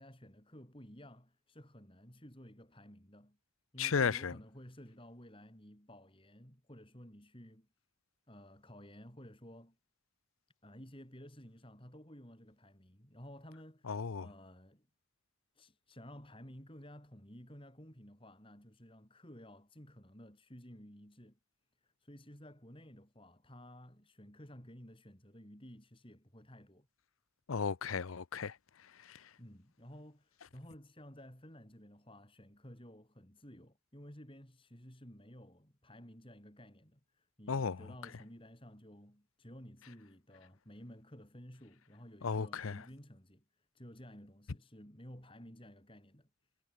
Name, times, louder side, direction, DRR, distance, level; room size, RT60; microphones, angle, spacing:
voice 1, 0.0-3.4 3.7-7.7 8.3-9.8 10.6-14.9 15.5-21.4 21.8-26.9 29.2-46.3, equal, 25° left, 6.1 m, -54 dB
voice 2, 3.8-4.3 13.9-14.3 27.5-28.5 29.1-29.2 37.5-37.8 42.2-42.8, left 5 dB, 85° left, 0.7 m, -34 dB
head